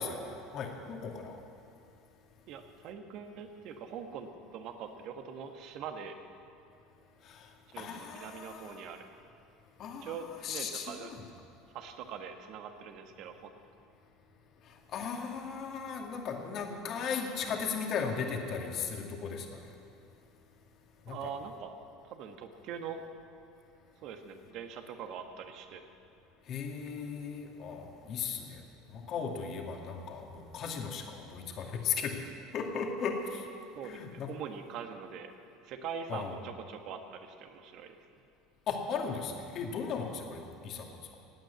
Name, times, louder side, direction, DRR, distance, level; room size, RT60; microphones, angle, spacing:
voice 1, 0.0-1.4 7.2-8.9 9.8-10.1 10.4-11.1 14.6-19.7 21.0-21.3 26.5-28.6 28.9-32.2 32.5-33.5 33.8-34.3 36.1-36.3 38.7-40.9, left 6 dB, 50° left, 2 dB, 2.4 m, -37 dB
voice 2, 2.5-6.2 7.7-9.1 10.0-11.1 11.7-13.5 21.1-21.8 22.0-23.0 24.0-25.8 33.7-35.3 35.6-38.0, right 6 dB, 55° right, 6 dB, 1.5 m, -43 dB
17.0 x 9.2 x 8.3 m, 2.6 s
hypercardioid pair, 75°, 0 cm